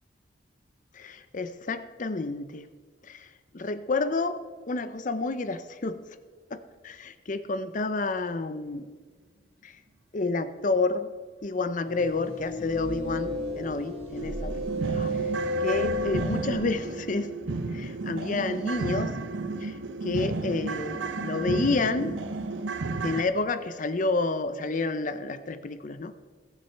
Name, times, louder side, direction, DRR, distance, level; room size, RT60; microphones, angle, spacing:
voice 1, 0.9-2.7 3.1-3.3 3.5-4.4 4.7-6.0 6.5-8.9 9.6-9.8 10.1-11.1 11.4-14.5 14.8-15.1 15.6-17.3 17.7-19.1 19.6-19.8 20.0-22.2 23.0-26.1, left 3 dB, 45° left, 12 dB, 0.6 m, -29 dB
sound 1, 11.9-16.5, left 1 dB, 30° right, 3.8 m, -32 dB
sound 2, 13.7-13.8 14.2-23.2, right 3 dB, 80° right, 0.8 m, -32 dB
20.5 x 7.1 x 4.5 m, 1.5 s
head